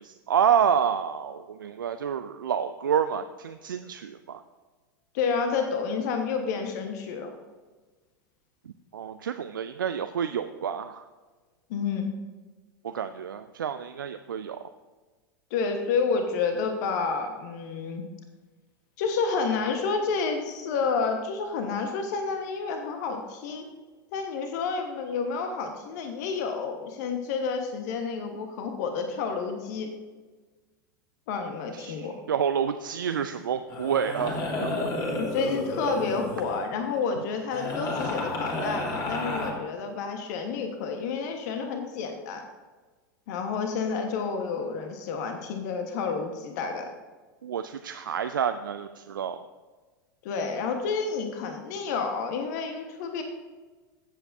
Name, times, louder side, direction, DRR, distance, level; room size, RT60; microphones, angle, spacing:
voice 1, 0.0-4.4 8.9-11.1 12.8-14.6 31.7-34.8 47.4-49.4, right 8 dB, 70° right, 9 dB, 0.4 m, -28 dB
voice 2, 5.1-7.3 11.7-12.1 15.5-18.0 19.0-23.7 24.1-29.9 31.3-32.2 35.1-42.4 43.3-46.9 50.2-53.2, left 5 dB, 55° left, 5 dB, 1.2 m, -30 dB
sound 1, 33.0-33.3 33.7-36.6 37.5-39.5, left 2 dB, 35° left, 2.6 m, -31 dB
15.5 x 7.9 x 2.7 m, 1.3 s
figure-of-eight pair, 85°, 11 cm